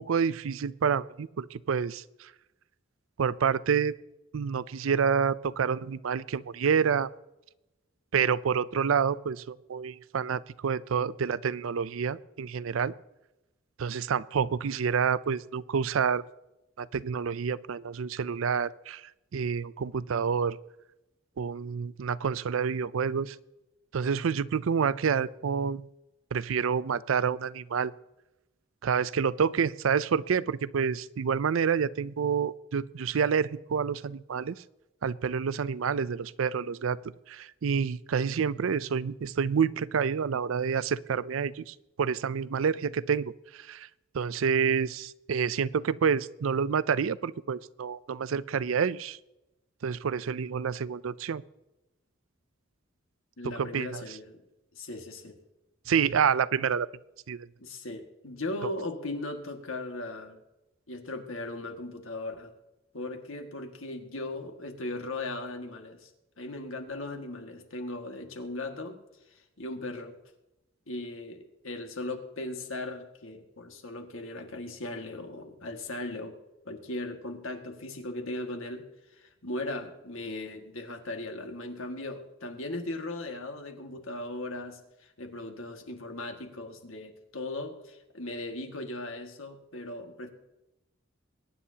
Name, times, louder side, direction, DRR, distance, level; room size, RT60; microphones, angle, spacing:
voice 1, 0.0-2.0 3.2-3.9 4.3-7.1 8.1-12.9 13.8-16.2 16.8-19.0 19.3-20.6 21.4-23.4 23.9-25.9 26.3-27.9 28.8-34.6 35.0-37.0 37.3-43.9 44.1-49.2 49.8-51.4 53.4-54.0 55.9-56.9 57.3-57.5, right 6 dB, 80° right, 18 dB, 0.4 m, -28 dB
voice 2, 53.4-54.4 54.7-55.4 57.6-60.4 60.9-62.5 62.9-66.1 66.4-69.0 69.3-70.2 70.9-76.4 76.7-78.9 79.1-90.3, left 2 dB, 80° left, 4 dB, 1.9 m, -38 dB
22.5 x 10.0 x 2.8 m, 0.94 s
head